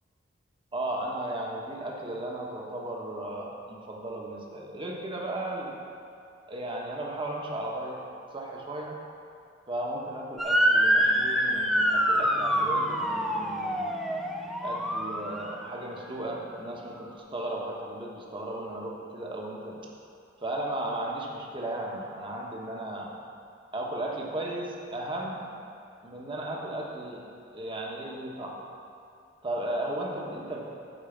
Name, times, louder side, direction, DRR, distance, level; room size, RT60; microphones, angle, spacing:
voice 1, 0.7-5.8 6.5-8.0 8.3-9.0 9.7-13.9 14.6-19.9 20.4-23.1 23.7-25.5 26.0-27.2 27.5-28.6 29.4-30.6, right 1 dB, 25° right, -2 dB, 1.1 m, -35 dB
Motor vehicle (road) / Siren, 10.4-15.6, equal, ahead, 0.5 m, -25 dB
8.4 x 4.8 x 7.1 m, 2.5 s
head